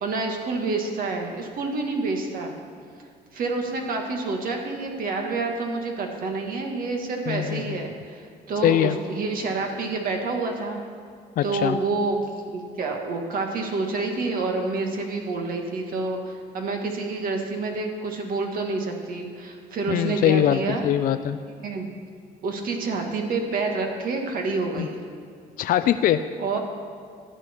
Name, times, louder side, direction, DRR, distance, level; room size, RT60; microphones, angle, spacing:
voice 1, 0.0-2.5 3.3-10.8 11.4-20.9 21.5-21.9 22.4-25.0 26.4-26.6, right 3 dB, 55° right, 2 dB, 1.8 m, -28 dB
voice 2, 7.3-7.9 8.6-9.0 11.4-11.8 19.9-21.4 24.8-24.9 25.6-26.2, left 11 dB, 55° left, 10 dB, 0.4 m, -22 dB
15.0 x 9.9 x 4.5 m, 2.1 s
cardioid pair, 110°, 17 cm